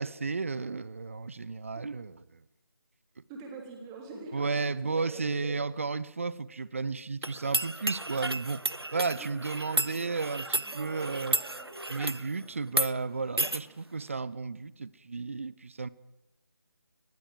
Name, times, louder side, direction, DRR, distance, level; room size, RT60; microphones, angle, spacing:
voice 1, 0.0-2.4 4.3-8.6 8.9-11.4 11.9-15.9, right 4 dB, 35° right, 0.7 m, -33 dB
voice 2, 3.3-4.5 4.8-5.5 9.1-9.4 10.6-11.8, right 4 dB, 10° right, 3.4 m, -45 dB
sound 1, 7.2-12.3 12.7-12.9 13.4-13.6, right 2 dB, 85° right, 1.1 m, -32 dB
23.5 x 20.0 x 7.8 m
figure-of-eight pair, 160°, 13 cm